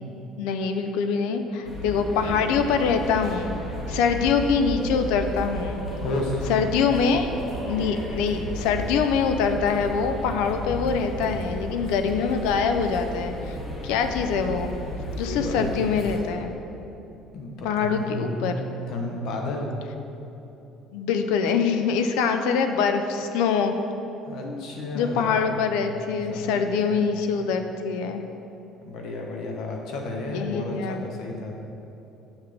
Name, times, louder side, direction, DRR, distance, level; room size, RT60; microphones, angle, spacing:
voice 1, 0.4-3.6 3.9-5.8 6.5-7.4 7.6-13.5 13.8-14.7 15.2-16.5 17.6-18.5 20.9-23.7 24.4-24.7 24.9-28.2 30.3-31.1, left 6 dB, 90° left, 7 dB, 0.4 m, -24 dB
sound 1, 1.7-16.2, equal, 20° left, 1.1 m, -34 dB
voice 2, 6.0-6.4 15.3-15.8 17.3-19.7 24.3-25.5 26.0-27.0 27.3-27.5 28.8-31.5, left 2 dB, 60° left, 1 dB, 0.9 m, -32 dB
7.1 x 5.7 x 3.3 m, 3.0 s
cardioid pair, 160°, 0 cm